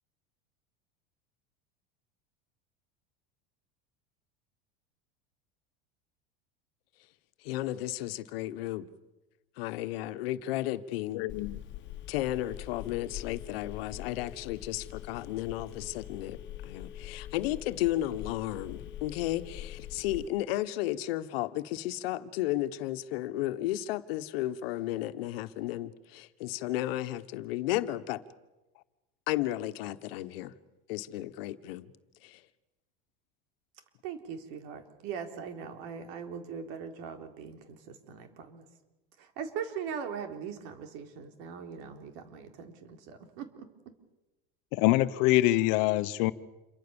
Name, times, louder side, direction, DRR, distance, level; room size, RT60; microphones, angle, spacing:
voice 1, 7.4-8.9 9.6-11.2 12.1-16.4 16.6-28.2 29.3-30.5 30.9-31.9 32.2-32.4, left 15 dB, 80° left, 1.4 m, -33 dB
voice 2, 11.1-11.6 44.7-46.3, left 17 dB, 65° left, 1.1 m, -25 dB
Telephone, 11.3-20.3, left 12 dB, 40° left, 1.7 m, -44 dB
voice 3, 34.0-38.7 39.2-43.7, right 7 dB, 70° right, 4.0 m, -40 dB
28.0 x 23.5 x 7.2 m
supercardioid pair, 130°, 29 cm